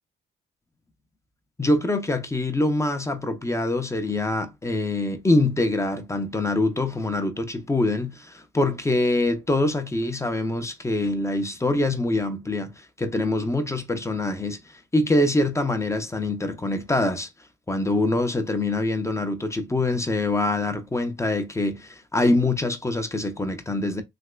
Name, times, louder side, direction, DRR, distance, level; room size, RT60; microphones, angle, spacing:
voice 1, 1.6-17.3 17.7-24.0, left 2 dB, 15° left, 0.5 m, -24 dB
3.2 x 2.9 x 2.2 m
cardioid pair, 90°, 20 cm